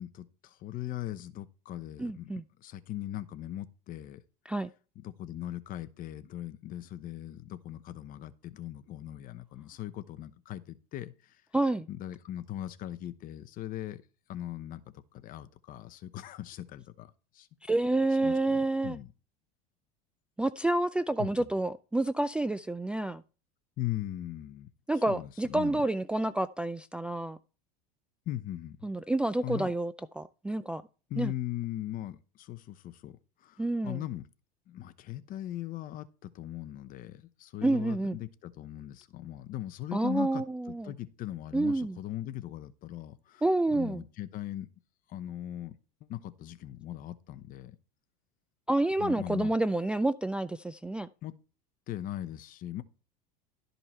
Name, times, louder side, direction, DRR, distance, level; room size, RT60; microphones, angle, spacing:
voice 1, 0.0-2.3 2.6-4.2 5.0-11.4 11.9-14.0 14.3-17.5 18.2-19.1 21.2-21.3 23.8-24.7 25.1-25.8 28.3-28.8 29.4-29.7 31.1-34.3 34.7-40.4 40.8-43.4 43.7-44.7 45.1-45.8 46.1-47.8 49.0-49.5 51.2-51.3 51.9-52.8, left 13 dB, 45° left, 0.9 m, -39 dB
voice 2, 2.0-2.4 4.5-4.7 11.5-11.9 17.7-19.0 20.4-23.2 24.9-27.4 28.8-30.8 31.2-31.3 33.6-34.0 37.6-38.2 39.9-40.9 41.5-42.0 43.4-44.0 48.7-51.1, right 2 dB, 5° right, 0.3 m, -29 dB
12.5 x 5.4 x 4.4 m
supercardioid pair, 120°, 20 cm